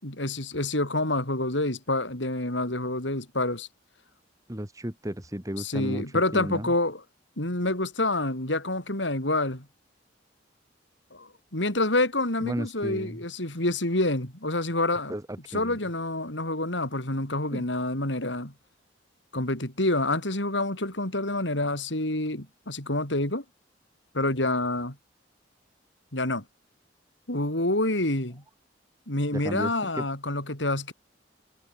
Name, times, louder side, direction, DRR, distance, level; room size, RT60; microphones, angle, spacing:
voice 1, 0.0-3.7 5.6-7.0 7.4-9.7 11.1-15.1 15.5-18.5 19.3-23.4 24.1-25.0 26.1-26.4 27.3-28.4 29.1-30.9, left 2 dB, 80° left, 6.6 m, -27 dB
voice 2, 4.5-6.0 6.3-6.7 12.4-13.2 15.1-15.8 17.5-17.7 29.4-30.1, equal, 20° right, 2.3 m, -34 dB
head